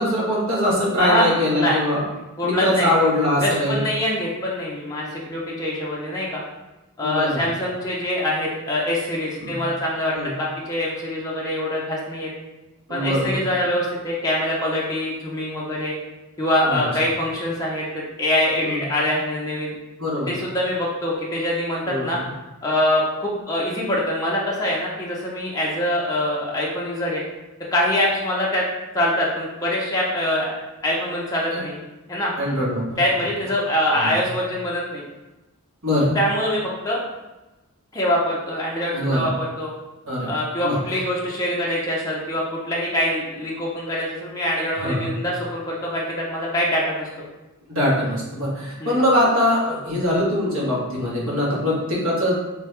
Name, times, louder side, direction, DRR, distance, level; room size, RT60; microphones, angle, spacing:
voice 1, 0.0-2.0 2.4-3.8 7.0-7.4 9.4-9.6 10.1-10.3 12.9-13.4 16.6-16.8 18.6-18.8 20.0-20.4 21.8-22.2 31.5-31.6 32.4-33.0 33.9-34.1 35.8-36.1 38.9-39.3 40.1-40.3 40.6-40.8 44.8-45.1 47.7-52.4, left 1 dB, 70° right, -5 dB, 1.3 m, -22 dB
voice 2, 2.4-2.9 3.4-6.4 7.0-12.3 12.9-16.0 16.4-17.8 18.2-19.8 20.3-22.2 22.6-27.2 27.7-28.6 28.9-30.5 30.8-31.8 32.1-32.3 33.0-35.0 36.1-37.0 37.9-39.7 40.3-47.1 48.8-49.0, left 1 dB, 15° left, -5 dB, 0.6 m, -24 dB
3.3 x 3.2 x 3.2 m, 1.1 s
head